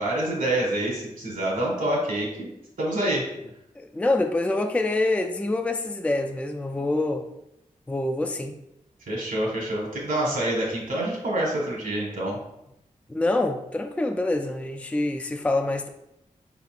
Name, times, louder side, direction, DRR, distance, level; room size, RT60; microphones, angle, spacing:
voice 1, 0.0-2.5 2.8-3.3 9.1-12.4, right 1 dB, 80° right, -2 dB, 1.7 m, -26 dB
voice 2, 3.8-7.3 7.9-8.6 13.1-15.9, left 2 dB, 10° left, 5 dB, 0.3 m, -26 dB
5.0 x 4.1 x 2.5 m, 0.84 s
wide cardioid pair, 80°, 14 cm